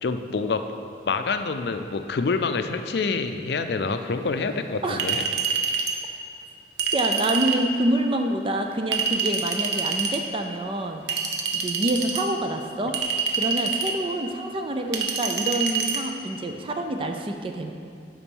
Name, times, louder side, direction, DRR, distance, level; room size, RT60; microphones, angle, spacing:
voice 1, 0.0-0.6 1.1-5.2, left 4 dB, 65° left, 8 dB, 0.4 m, -26 dB
Chink clink, 5.0-6.0 6.8-7.6 8.9-10.2 11.1-12.2 12.9-14.0 14.9-16.0, right 5 dB, 70° right, 0.7 m, -26 dB
voice 2, 6.9-11.0 11.6-12.9 13.3-17.7, right 1 dB, 30° right, 4 dB, 0.4 m, -27 dB
7.1 x 5.3 x 5.4 m, 2.3 s
head